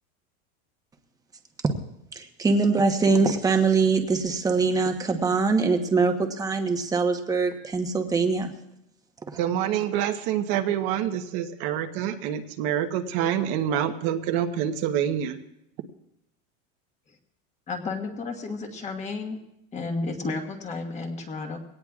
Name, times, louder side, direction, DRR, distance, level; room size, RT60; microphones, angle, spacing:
voice 1, 2.1-8.5, right 4 dB, 10° right, 5 dB, 1.1 m, -23 dB
voice 2, 9.4-15.4, right 10 dB, 55° right, 6 dB, 1.1 m, -26 dB
voice 3, 17.7-19.4 19.7-21.6, left 3 dB, 20° left, 4 dB, 1.5 m, -32 dB
22.5 x 17.5 x 2.4 m, 0.79 s
supercardioid pair, 160°, 34 cm